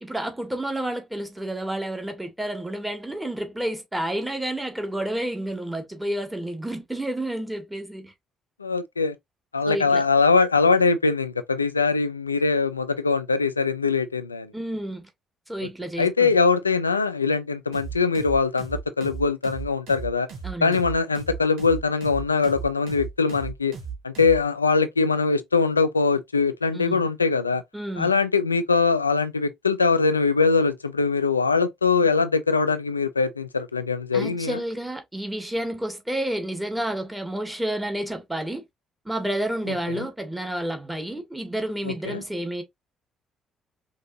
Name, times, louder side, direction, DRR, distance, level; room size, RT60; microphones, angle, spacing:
voice 1, 0.0-8.1 9.6-10.0 14.5-15.1 15.5-16.3 20.4-20.8 26.7-27.1 27.7-28.1 34.1-38.6 39.1-42.6, right 1 dB, 10° right, 1.7 m, -30 dB
voice 2, 8.6-9.1 9.5-14.5 16.0-20.3 20.6-23.7 24.0-27.6 28.0-34.6 39.9-40.0 41.9-42.2, left 4 dB, 90° left, 0.4 m, -22 dB
sound 1, 17.7-24.4, right 6 dB, 65° right, 1.5 m, -36 dB
5.2 x 2.9 x 2.7 m
figure-of-eight pair, 45°, 0 cm